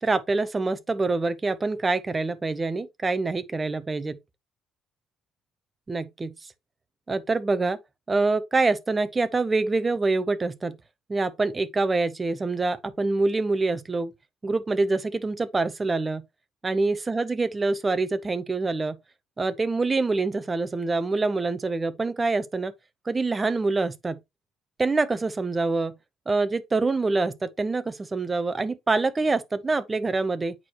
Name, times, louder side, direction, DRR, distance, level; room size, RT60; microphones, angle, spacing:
voice 1, 0.0-4.2 5.9-6.3 7.1-7.8 8.1-10.8 11.1-14.1 14.4-16.2 16.6-19.0 19.4-22.7 23.1-24.1 24.8-25.9 26.3-30.5, right 3 dB, 20° right, 0.7 m, -25 dB
8.4 x 4.7 x 2.9 m
cardioid pair, 145°, 0 cm